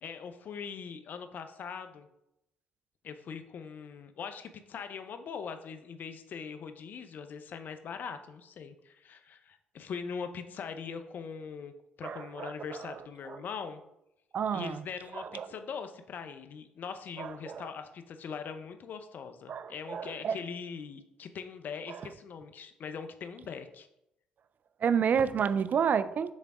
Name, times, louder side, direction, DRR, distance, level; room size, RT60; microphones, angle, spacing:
voice 1, 0.0-2.1 3.0-13.8 14.5-23.9, left 6 dB, 60° left, 0.7 m, -41 dB
voice 2, 12.0-13.4 14.3-14.8 15.1-15.5 17.2-17.7 19.5-20.4 21.9-22.1 24.8-26.3, right 7 dB, 55° right, 0.4 m, -31 dB
6.3 x 3.4 x 4.8 m
supercardioid pair, 55°, 3 cm